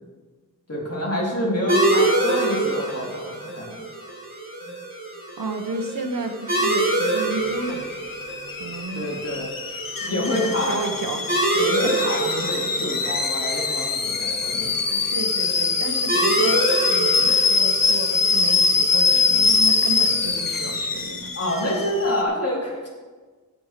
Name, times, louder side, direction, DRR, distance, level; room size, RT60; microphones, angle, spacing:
voice 1, 0.7-3.8 4.6-4.7 8.9-9.5 10.0-10.8 11.5-15.0 21.3-22.9, left 1 dB, 45° left, -4 dB, 3.9 m, -27 dB
sound 1, 1.7-20.8, right 2 dB, 25° right, 3.3 m, -27 dB
voice 2, 5.4-7.9 8.6-9.1 9.7-11.7 15.1-21.3, right 3 dB, 85° right, 5 dB, 1.3 m, -32 dB
Alarm / Boiling, 7.4-22.2, left 4 dB, 90° left, 1.1 m, -23 dB
17.0 x 5.8 x 5.2 m, 1.4 s
wide cardioid pair, 75°, 33 cm